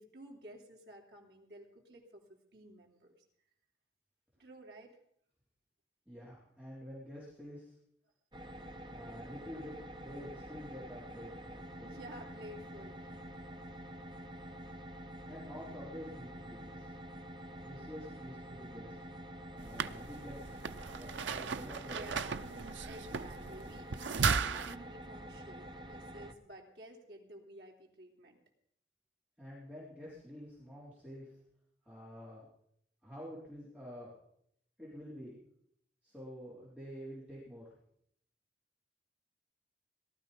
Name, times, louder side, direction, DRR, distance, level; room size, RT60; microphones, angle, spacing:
voice 1, 0.0-2.2 2.5-3.2 4.4-5.0 11.8-13.4 21.8-22.5 22.9-28.4, right 1 dB, 60° right, 0 dB, 3.2 m, -52 dB
voice 2, 6.1-7.8 8.9-12.0 15.3-17.0 17.6-19.0 19.6-20.6 21.0-22.2 29.4-31.3 31.8-32.5 33.0-34.1 34.8-35.4 36.0-37.7, equal, 5° right, -7 dB, 4.0 m, -48 dB
sound 1, 8.3-26.3, equal, 25° right, 1.2 m, -48 dB
sound 2, 19.6-24.7, right 5 dB, 85° right, 0.6 m, -36 dB
18.0 x 12.5 x 5.3 m, 0.70 s
head